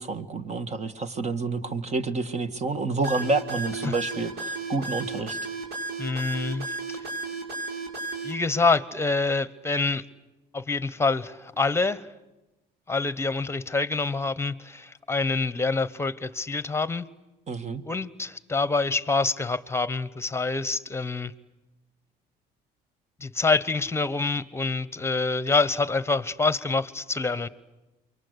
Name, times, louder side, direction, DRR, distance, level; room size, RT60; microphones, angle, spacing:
voice 1, 0.0-5.4 17.5-17.8, right 3 dB, 40° right, 11 dB, 1.9 m, -29 dB
sound 1, 3.0-8.3, right 3 dB, 75° right, 7.6 m, -33 dB
voice 2, 6.0-7.0 8.2-10.0 10.5-12.1 12.9-17.1 17.9-21.3 23.2-27.5, left 3 dB, 15° left, 17 dB, 1.1 m, -26 dB
28.5 x 24.0 x 8.3 m, 1.0 s
cardioid pair, 110°, 17 cm